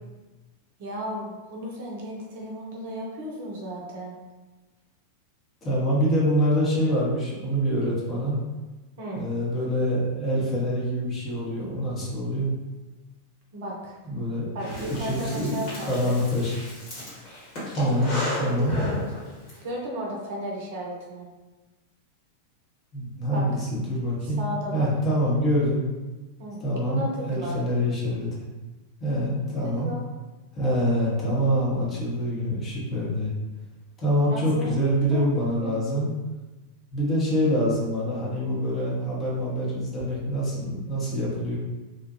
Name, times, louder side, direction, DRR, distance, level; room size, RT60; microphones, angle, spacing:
voice 1, 0.8-4.2 9.0-9.3 13.5-14.0 14.5-16.1 18.5-19.1 19.6-21.3 23.3-23.5 24.2-24.9 26.4-26.6 26.9-27.6 29.6-30.0 34.3-34.8 35.1-35.8, right 1 dB, 55° right, -2 dB, 0.6 m, -34 dB
voice 2, 5.6-8.4 9.1-12.5 14.0-14.5 14.9-16.5 17.7-18.8 22.9-24.5 24.7-25.9 26.6-28.3 29.0-29.9 30.5-33.3 34.0-36.1 36.9-41.6, equal, 25° left, -6 dB, 1.0 m, -25 dB
Breathing, 14.6-19.6, left 1 dB, 45° left, 1.4 m, -34 dB
2.6 x 2.4 x 2.7 m, 1.2 s
figure-of-eight pair, 90°, 0 cm